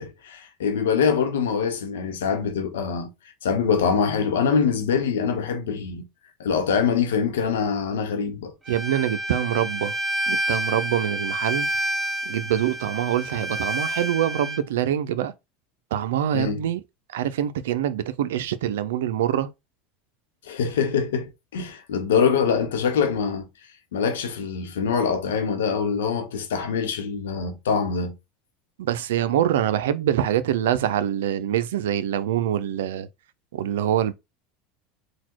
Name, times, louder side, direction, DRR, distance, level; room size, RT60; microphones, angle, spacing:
voice 1, 0.0-3.1 3.4-6.1 6.4-8.5 16.3-16.7 20.5-23.5 23.9-28.1, left 6 dB, 90° left, 1.0 m, -24 dB
Bowed string instrument, 8.7-14.6, right 1 dB, 20° right, 0.5 m, -29 dB
voice 2, 8.7-9.9 10.3-11.7 12.3-15.3 15.9-16.8 17.1-19.5 28.8-33.1 33.5-34.1, right 11 dB, 85° right, 0.5 m, -24 dB
3.9 x 2.3 x 4.5 m
supercardioid pair, 100°, 0 cm